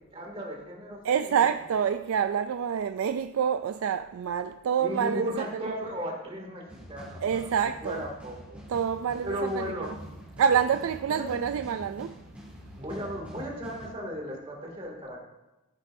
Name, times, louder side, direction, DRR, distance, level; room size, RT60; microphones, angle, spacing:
voice 1, 0.1-1.5 4.8-8.6 9.2-10.0 11.1-11.4 12.7-15.2, equal, 25° right, 2.4 m, -36 dB
voice 2, 1.0-5.6 7.2-8.0 8.7-9.9 10.4-12.2, right 7 dB, 75° right, 0.3 m, -27 dB
sound 1, 6.7-13.9, equal, 5° right, 3.2 m, -46 dB
15.5 x 9.4 x 2.7 m
head